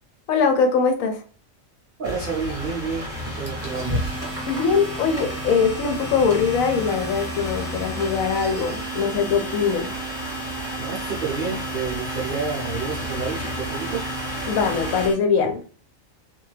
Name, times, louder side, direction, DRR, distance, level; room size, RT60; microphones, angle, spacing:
voice 1, 0.3-1.2 4.5-9.9 14.5-15.6, left 5 dB, 80° left, 5 dB, 1.0 m, -22 dB
sound 1, 2.0-15.1, left 1 dB, ahead, 1.2 m, -32 dB
voice 2, 2.0-4.1 10.8-14.1, right 5 dB, 60° right, -3 dB, 0.5 m, -30 dB
Domestic sounds home sounds, 3.5-15.1, right 2 dB, 20° left, 0.3 m, -35 dB
2.6 x 2.3 x 3.1 m, 0.39 s
omnidirectional pair, 1.4 m